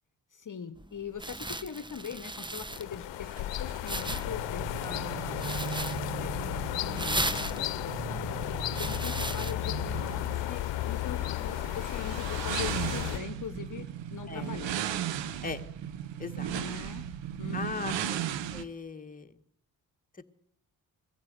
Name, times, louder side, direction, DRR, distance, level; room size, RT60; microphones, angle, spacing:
voice 1, 0.3-5.4 6.2-14.8 16.5-17.0 17.4-18.1, left 7 dB, 45° left, 10 dB, 1.2 m, -42 dB
sound 1, 0.8-9.5, right 1 dB, 10° right, 1.1 m, -37 dB
sound 2, 2.7-13.2, left 14 dB, 70° left, 0.9 m, -34 dB
sound 3, 3.3-18.6, right 9 dB, 75° right, 1.2 m, -37 dB
voice 2, 17.5-17.9 18.5-19.3, left 4 dB, 20° left, 5 dB, 1.8 m, -38 dB
21.5 x 15.0 x 8.3 m, 0.72 s
hypercardioid pair, 45°, 45 cm